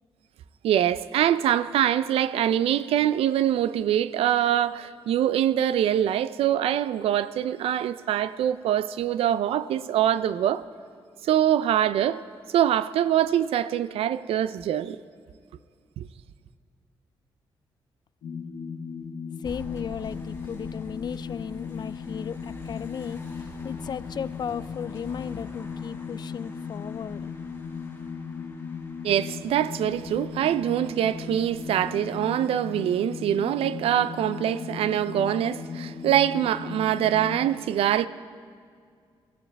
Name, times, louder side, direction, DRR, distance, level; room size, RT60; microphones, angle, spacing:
voice 1, 0.6-10.6 11.2-12.2 12.5-15.0 16.0-16.1 29.0-38.1, right 11 dB, 85° right, 0.5 m, -24 dB
sound 1, 18.2-37.5, left 5 dB, 85° left, 1.3 m, -37 dB
voice 2, 19.4-27.3, left 8 dB, 45° left, 0.4 m, -35 dB
sound 2, 19.4-32.1, left 1 dB, 25° left, 4.7 m, -47 dB
22.0 x 15.5 x 3.5 m
cardioid pair, 80°, 10 cm